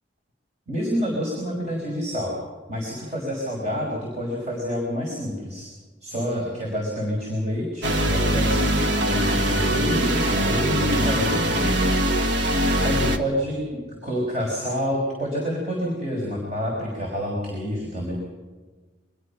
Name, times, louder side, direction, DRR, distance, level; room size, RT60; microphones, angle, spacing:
voice 1, 0.7-2.3 2.7-5.7 6.0-11.4 12.8-13.7 14.0-18.1, equal, 40° right, -2 dB, 5.4 m, -28 dB
sound 1, 7.8-13.2, right 1 dB, 65° right, 1.6 m, -22 dB
25.0 x 21.0 x 5.9 m, 1.4 s
head